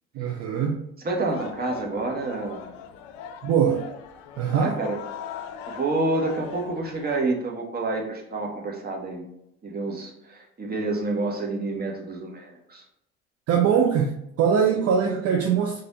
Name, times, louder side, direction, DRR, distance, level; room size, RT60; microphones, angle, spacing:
voice 1, 0.1-0.8 3.4-3.9 4.4-4.8 13.5-15.8, right 7 dB, 50° right, 0.6 m, -22 dB
voice 2, 1.0-2.6 4.5-5.0 5.7-9.2 9.6-12.8 14.7-14.8, right 2 dB, 30° right, 1.2 m, -28 dB
sound 1, 1.3-7.2, left 8 dB, 70° left, 0.5 m, -40 dB
4.1 x 2.6 x 3.8 m
hypercardioid pair, 60°, 31 cm